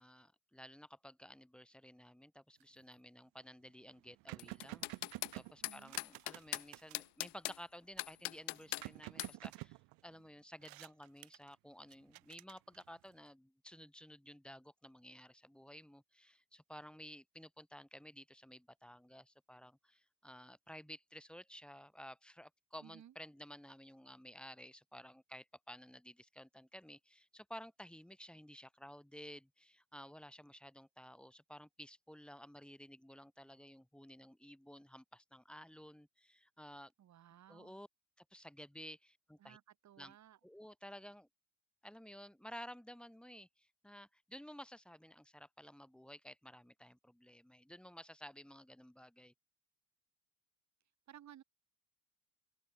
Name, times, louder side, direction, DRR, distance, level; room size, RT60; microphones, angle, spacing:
voice 1, 0.0-36.9 37.5-37.9 38.2-39.6 40.0-40.1 40.4-41.3 41.8-49.3, equal, ahead, 6.3 m, -54 dB
sound 1, 2.6-2.9 3.4-3.5 3.7-7.1 8.0-10.3 10.6-11.5 11.9-13.1, right 26 dB, 65° right, 1.8 m, -51 dB
sound 2, 4.4-5.3 5.6-6.6 6.9-7.6 8.0-8.8 9.2-9.3, left 31 dB, 75° left, 0.7 m, -40 dB
voice 2, 5.6-5.9 22.8-23.1 37.0-37.8 39.4-40.4 51.1-51.4, right 11 dB, 45° right, 6.4 m, -58 dB
open air
hypercardioid pair, 85°, 37 cm